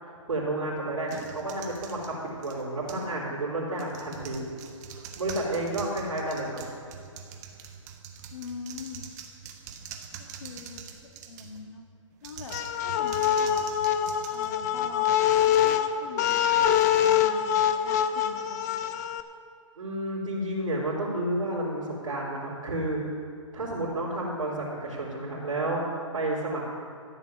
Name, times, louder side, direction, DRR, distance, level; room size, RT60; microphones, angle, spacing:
voice 1, 0.0-4.5 5.2-6.6 19.8-23.0 23.5-25.8 26.1-26.6, right 1 dB, 80° right, -7 dB, 3.8 m, -31 dB
sound 1, 1.1-3.1 3.7-11.7 12.2-15.1, right 7 dB, 35° right, 1.2 m, -44 dB
voice 2, 8.3-9.1 10.2-10.8 11.3-11.8 12.2-13.8 14.3-18.9, left 5 dB, 65° left, 3 dB, 1.9 m, -44 dB
sound 2, 12.5-19.2, left 10 dB, 30° left, 0.6 m, -24 dB
13.5 x 7.6 x 7.2 m, 2.5 s
hypercardioid pair, 150°, 17 cm